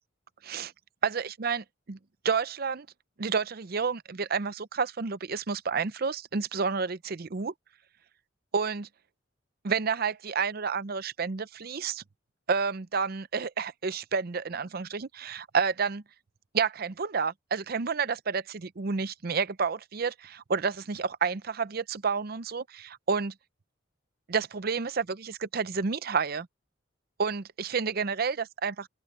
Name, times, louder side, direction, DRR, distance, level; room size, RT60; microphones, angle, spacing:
voice 1, 1.0-2.0 2.2-2.9 3.2-7.5 8.5-8.9 9.6-12.0 12.5-16.0 16.5-23.3 24.3-26.5 27.2-28.9, right 5 dB, 50° right, 0.6 m, -30 dB
open air
head